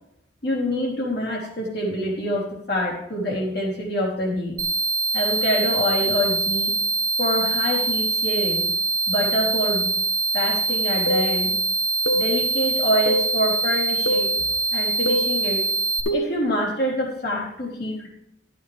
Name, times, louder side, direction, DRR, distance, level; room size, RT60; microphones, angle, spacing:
voice 1, 0.4-4.5 5.1-6.7 7.2-8.7 9.1-9.9 10.3-11.5 12.1-14.4 14.7-15.6 16.1-18.1, equal, 60° left, -3 dB, 3.4 m, -26 dB
sound 1, 4.6-16.0, right 3 dB, 50° right, 1.2 m, -24 dB
sound 2, 11.1-11.3 12.1-12.3 13.1-13.3 14.1-14.3 15.1-15.3 16.1-16.4, equal, 80° left, 1.2 m, -24 dB
11.5 x 8.5 x 3.6 m, 0.77 s
head